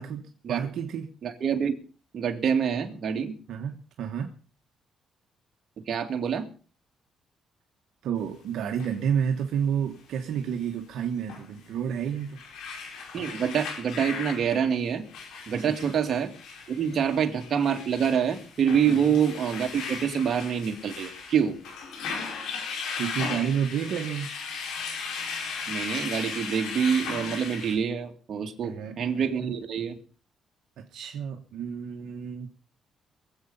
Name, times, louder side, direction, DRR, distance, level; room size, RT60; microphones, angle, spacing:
voice 1, 0.0-1.1 3.5-4.3 8.0-12.4 15.6-15.9 18.9-19.1 22.9-24.3 28.6-29.0 29.4-29.5 30.8-32.5, right 8 dB, 80° right, 1.3 m, -30 dB
voice 2, 1.2-1.8 2.1-3.4 5.9-6.5 13.1-15.1 15.5-16.3 16.7-21.6 25.7-30.0, right 7 dB, 55° right, 2.2 m, -26 dB
sound 1, 8.8-8.9 11.3-11.4 12.0-27.7, left 5 dB, 90° left, 4.9 m, -37 dB
21.5 x 8.2 x 5.5 m
cardioid pair, 90°, 0 cm